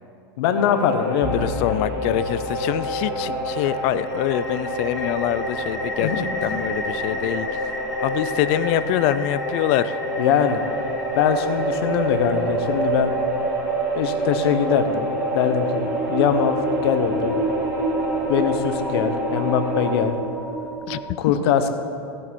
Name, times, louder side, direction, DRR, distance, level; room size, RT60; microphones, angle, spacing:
voice 1, 0.4-1.7 6.0-6.2 10.2-10.6 11.2-13.1 13.9-15.1 15.3-16.6 16.8-17.4 18.3-20.1 21.2-21.7, left 8 dB, 70° left, 8 dB, 1.1 m, -22 dB
sound 1, 0.6-19.9, left 1 dB, 10° right, 2.7 m, -29 dB
sound 2, 1.2-21.1, right 2 dB, 5° left, 1.0 m, -30 dB
voice 2, 1.3-6.1 6.4-7.5 8.0-10.0 20.9-21.0, left 13 dB, 50° left, 15 dB, 0.5 m, -24 dB
16.0 x 8.5 x 4.4 m, 2.5 s
supercardioid pair, 125°, 14 cm